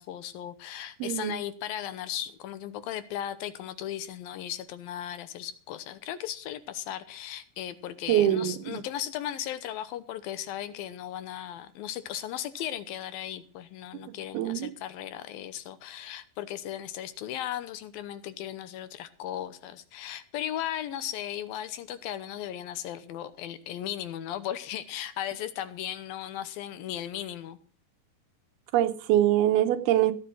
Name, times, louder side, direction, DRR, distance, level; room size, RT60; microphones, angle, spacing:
voice 1, 0.0-27.6, left 11 dB, 75° left, 2.6 m, -36 dB
voice 2, 1.0-1.3 8.1-8.8 14.3-14.7 28.7-30.1, right 12 dB, 80° right, 2.8 m, -24 dB
16.5 x 7.8 x 6.1 m
omnidirectional pair, 4.5 m